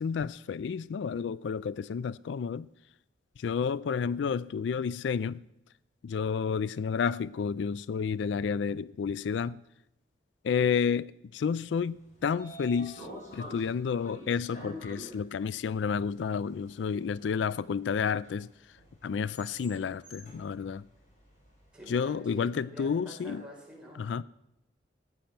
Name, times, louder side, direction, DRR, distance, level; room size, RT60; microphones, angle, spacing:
voice 1, 0.0-2.7 3.4-5.4 6.0-9.6 10.4-13.1 13.3-18.5 19.0-20.8 21.9-23.4 24.0-24.2, left 6 dB, 85° left, 0.3 m, -30 dB
Train / Sliding door, 11.8-21.9, equal, 45° left, 4.9 m, -49 dB
voice 2, 21.7-24.2, right 1 dB, 5° right, 4.9 m, -47 dB
15.5 x 8.9 x 5.9 m
head